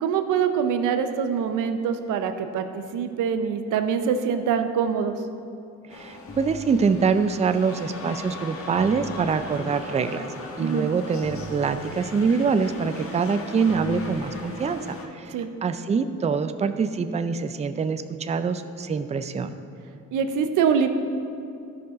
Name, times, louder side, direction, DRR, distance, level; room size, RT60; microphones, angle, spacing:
voice 1, 0.0-5.2 10.6-10.9 15.3-15.5 20.1-20.9, right 7 dB, 85° right, 8 dB, 0.7 m, -24 dB
sound 1, 5.9-15.1, left 3 dB, 45° left, 1.2 m, -38 dB
voice 2, 5.9-10.3 10.6-15.4 15.6-19.5, right 5 dB, 20° right, 10 dB, 0.4 m, -25 dB
13.0 x 5.7 x 3.7 m, 2.5 s
cardioid pair, 90°, 30 cm